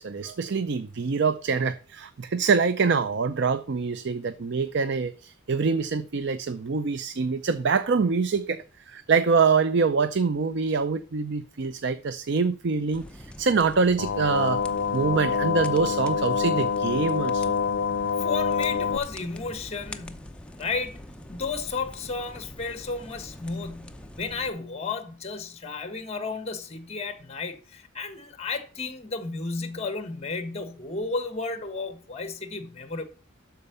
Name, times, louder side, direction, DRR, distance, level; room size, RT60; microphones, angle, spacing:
voice 1, 0.0-14.6 14.9-17.6, right 5 dB, 60° right, 0.5 m, -25 dB
sound 1, 12.9-24.5, left 1 dB, 5° left, 0.7 m, -44 dB
sound 2, 14.0-19.0, left 6 dB, 80° left, 0.6 m, -26 dB
voice 2, 18.2-20.3 20.6-21.0 21.3-33.0, left 4 dB, 30° left, 1.4 m, -33 dB
12.5 x 4.6 x 6.7 m
head